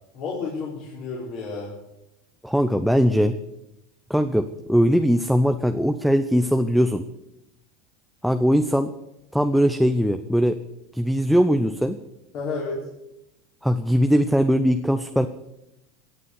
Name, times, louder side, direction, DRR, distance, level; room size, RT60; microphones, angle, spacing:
voice 1, 0.1-1.7 12.3-12.8, left 4 dB, 55° left, -6 dB, 4.9 m, -31 dB
voice 2, 2.4-3.4 4.1-7.0 8.2-8.9 9.3-10.6 10.9-12.0 13.6-15.3, equal, ahead, 7 dB, 0.8 m, -20 dB
16.0 x 7.7 x 8.3 m, 0.87 s
supercardioid pair, 105°, 0 cm